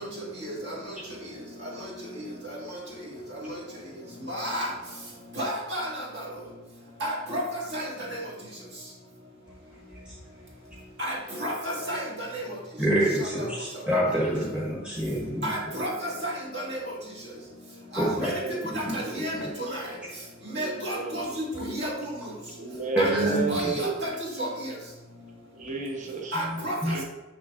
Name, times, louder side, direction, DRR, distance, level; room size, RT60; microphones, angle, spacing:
voice 1, 4.3-4.7 5.4-5.9 7.0-7.4 7.7-7.8 8.1-8.2 11.0-11.1 11.4-12.4 15.4-15.9 16.2-16.8 17.9-18.3 18.7-19.3 19.7-19.8 20.5-21.3 21.6-21.9 23.0-23.1 23.5-24.1 24.4-24.5 26.3-27.0, equal, 60° right, -3 dB, 1.7 m, -31 dB
voice 2, 12.8-15.5 18.0-18.3 18.7-19.0 19.3-19.5 22.9-23.8 26.4-27.0, equal, 5° right, -6 dB, 0.8 m, -27 dB
voice 3, 18.2-18.6 20.5-21.3 22.6-24.0 25.5-26.4 26.9-27.0, right 4 dB, 40° right, 2 dB, 0.8 m, -32 dB
6.4 x 6.1 x 2.4 m, 1.1 s
head